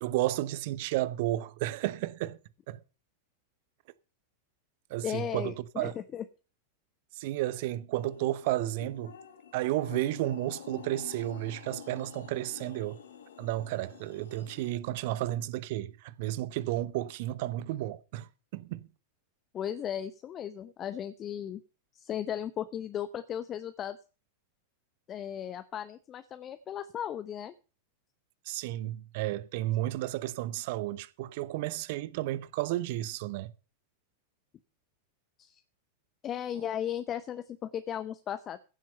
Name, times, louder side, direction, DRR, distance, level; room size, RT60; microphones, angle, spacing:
voice 1, 0.0-2.4 2.7-2.8 4.9-5.9 7.2-9.1 9.5-13.0 13.4-18.9 28.5-33.5, right 15 dB, 50° right, 0.8 m, -32 dB
voice 2, 5.0-6.3 19.5-21.6 21.9-24.0 25.1-27.5 35.4-35.6 36.2-38.6, left 10 dB, 30° left, 0.8 m, -36 dB
sound 1, 7.9-14.7, left 8 dB, 65° left, 2.0 m, -48 dB
15.5 x 7.5 x 5.4 m
figure-of-eight pair, 90°, 0 cm